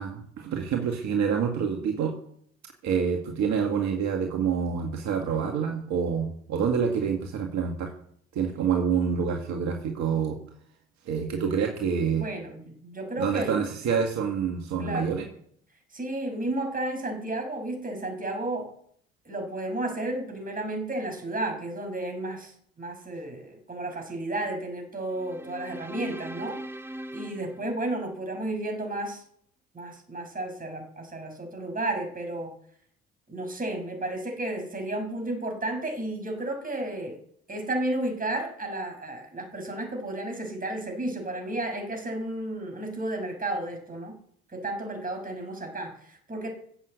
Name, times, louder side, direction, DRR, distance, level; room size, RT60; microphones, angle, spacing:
voice 1, 0.0-2.1 2.8-7.9 8.3-10.4 11.1-12.3 13.2-15.3, right 6 dB, 65° right, 2 dB, 2.1 m, -27 dB
voice 2, 12.1-13.5 14.8-15.1 15.9-18.7 19.2-26.6 27.1-29.2 29.7-32.5 33.3-37.2 37.5-44.2 44.5-46.5, right 1 dB, 25° right, 3 dB, 6.3 m, -32 dB
sound 1, 25.1-28.5, right 1 dB, 10° right, 1.6 m, -40 dB
15.5 x 8.0 x 8.1 m, 0.65 s
hypercardioid pair, 65°, 30 cm